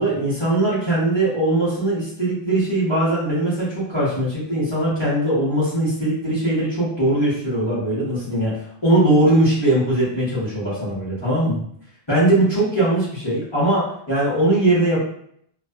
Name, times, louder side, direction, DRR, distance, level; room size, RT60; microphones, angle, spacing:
voice 1, 0.0-11.6 12.1-15.0, right 1 dB, 25° left, -12 dB, 0.9 m, -20 dB
2.5 x 2.3 x 2.2 m, 0.68 s
omnidirectional pair, 1.1 m